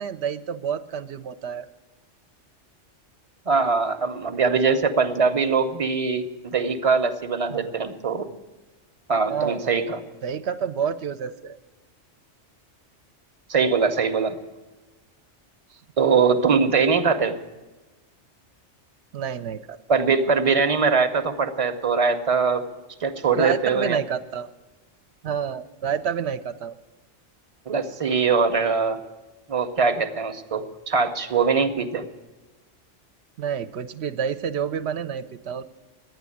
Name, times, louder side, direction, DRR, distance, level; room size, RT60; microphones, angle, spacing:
voice 1, 0.0-1.7 7.5-7.7 9.3-9.8 10.2-11.6 15.7-15.8 19.1-19.8 23.3-24.5 25.2-26.7 33.4-35.6, right 7 dB, 65° right, 11 dB, 0.9 m, -29 dB
voice 2, 3.5-8.3 9.1-10.0 13.5-14.4 16.0-17.4 19.9-22.6 23.0-24.0 27.7-29.0 29.5-32.1, right 5 dB, 35° right, 9 dB, 0.8 m, -22 dB
11.5 x 9.3 x 9.8 m, 1.1 s
omnidirectional pair, 1.2 m